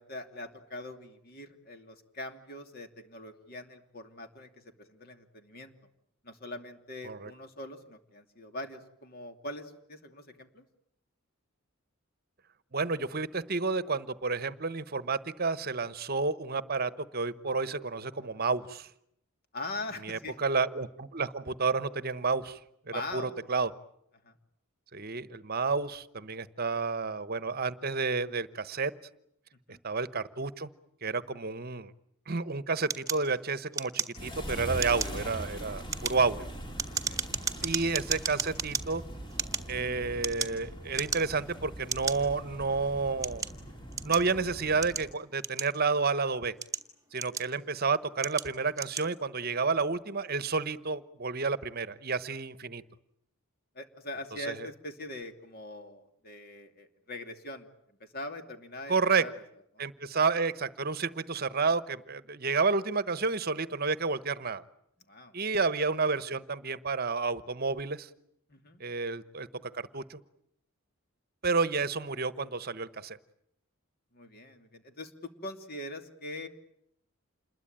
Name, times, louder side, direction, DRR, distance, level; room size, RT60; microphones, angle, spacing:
voice 1, 0.0-5.7 6.2-10.6 19.5-20.4 22.9-23.3 24.2-24.4 29.7-29.8 36.1-36.3 37.1-37.4 53.7-59.3 65.1-65.3 68.5-68.8 74.1-76.5, left 2 dB, 45° left, 6 dB, 2.8 m, -42 dB
voice 2, 12.7-18.9 20.0-22.6 23.1-23.7 24.9-28.9 29.8-30.7 31.0-31.9 32.3-36.5 37.6-39.0 39.7-43.5 44.0-46.5 47.1-52.8 54.4-54.7 58.9-59.2 59.8-64.6 65.3-68.1 68.8-70.2 71.4-73.2, right 4 dB, 45° right, 14 dB, 1.1 m, -30 dB
sound 1, 32.9-34.4 34.7-35.2 35.7-38.8 39.3-40.6 40.9-41.4 41.9-42.2 42.8-44.3 44.8-46.0 46.5-47.7 48.2-48.5 48.7-49.1, right 6 dB, 15° right, 1.8 m, -34 dB
sound 2, 34.2-45.2, right 1 dB, 20° left, 3.0 m, -42 dB
28.0 x 21.5 x 9.0 m, 0.74 s
head